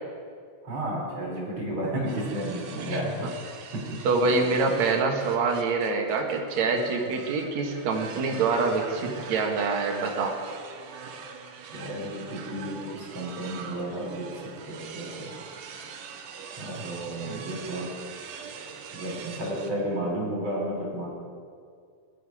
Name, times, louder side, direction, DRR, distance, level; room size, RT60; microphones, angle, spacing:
voice 1, 0.6-3.2 3.7-3.8 11.7-14.3 14.7-15.3 16.6-17.9 18.9-21.1, right 1 dB, 35° right, -3 dB, 4.2 m, -32 dB
sound 1, 2.1-19.7, right 6 dB, 80° right, 3.0 m, -42 dB
voice 2, 2.8-3.3 4.0-10.4 17.2-17.5, right 4 dB, 55° right, 2 dB, 2.6 m, -26 dB
21.0 x 12.5 x 5.0 m, 2.2 s
omnidirectional pair, 4.3 m